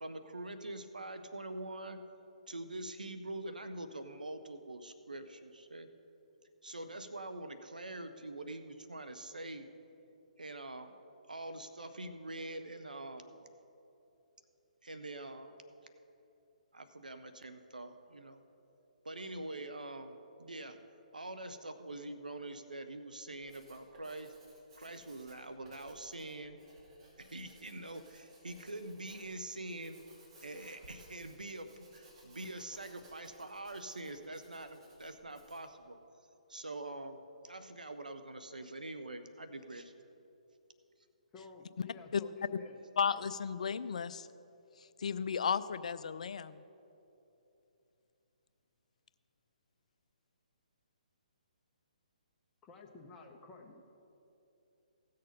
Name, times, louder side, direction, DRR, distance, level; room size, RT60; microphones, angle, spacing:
voice 1, 0.0-2.0 2.5-5.9 6.6-9.7 10.4-10.9 11.3-13.5 14.8-15.5 16.7-18.4 19.0-20.8 21.1-24.3 24.8-26.6 27.2-30.0 30.4-36.0 36.5-37.2 37.4-39.9, right 2 dB, 80° right, 0.8 m, -44 dB
Writing, 23.4-35.7, right 1 dB, 40° right, 3.1 m, -60 dB
voice 2, 41.3-42.8 52.7-53.8, left 4 dB, 15° left, 0.9 m, -52 dB
voice 3, 43.0-44.3 45.0-46.6, left 6 dB, 60° left, 0.4 m, -34 dB
16.5 x 6.6 x 5.3 m
figure-of-eight pair, 135°, 4 cm